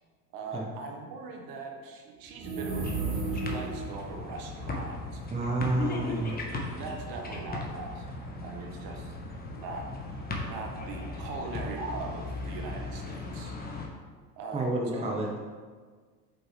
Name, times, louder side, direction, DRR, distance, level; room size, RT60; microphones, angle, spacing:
voice 1, 0.3-6.4 6.7-9.1 9.5-9.9 10.4-13.5 14.4-15.1, right 3 dB, 45° right, 2 dB, 1.3 m, -41 dB
sound 1, 2.3-3.9, right 3 dB, 30° right, 1.7 m, -32 dB
sound 2, 2.7-13.9, left 3 dB, 20° left, 1.2 m, -37 dB
voice 2, 5.3-6.4 14.5-15.4, right 2 dB, 10° right, -1 dB, 1.0 m, -29 dB
7.7 x 5.2 x 3.2 m, 1.5 s
hypercardioid pair, 85°, 49 cm